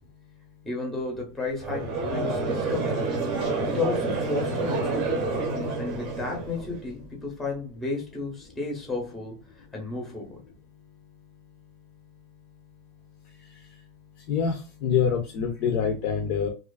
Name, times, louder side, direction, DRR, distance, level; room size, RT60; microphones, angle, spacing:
voice 1, 0.6-3.1 3.7-5.2 5.8-10.4, left 3 dB, 5° left, 0.7 m, -33 dB
Conversation / Crowd, 1.6-6.9, right 3 dB, 40° right, 0.7 m, -28 dB
voice 2, 14.3-16.5, left 7 dB, 45° left, 0.5 m, -25 dB
2.4 x 2.4 x 2.3 m
supercardioid pair, 155°, 2 cm